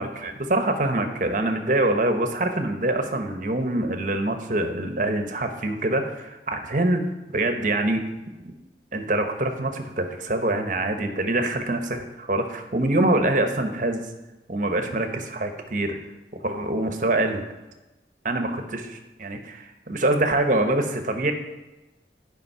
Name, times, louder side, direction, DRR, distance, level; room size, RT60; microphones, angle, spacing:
voice 1, 0.0-7.0 7.3-8.0 8.4-8.5 8.9-14.1 14.5-16.0 16.4-17.4 18.2-21.3, right 2 dB, 45° right, 6 dB, 1.0 m, -25 dB
10.5 x 5.3 x 5.5 m, 1.1 s
head